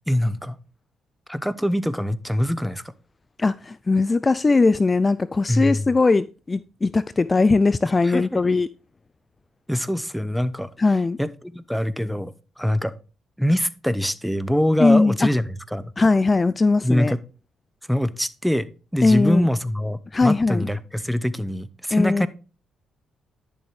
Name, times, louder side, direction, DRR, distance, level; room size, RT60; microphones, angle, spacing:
voice 1, 0.1-0.6 1.3-2.8 5.5-5.9 8.0-8.4 9.7-10.7 11.2-12.9 13.4-15.9 16.8-17.2 17.9-18.7 18.9-22.3, equal, ahead, 0.8 m, -24 dB
voice 2, 3.4-8.7 10.8-11.2 14.8-15.3 16.0-17.1 19.0-19.5 20.1-20.7 21.9-22.3, left 3 dB, 30° left, 0.3 m, -19 dB
10.5 x 7.1 x 3.2 m
supercardioid pair, 55°, 0 cm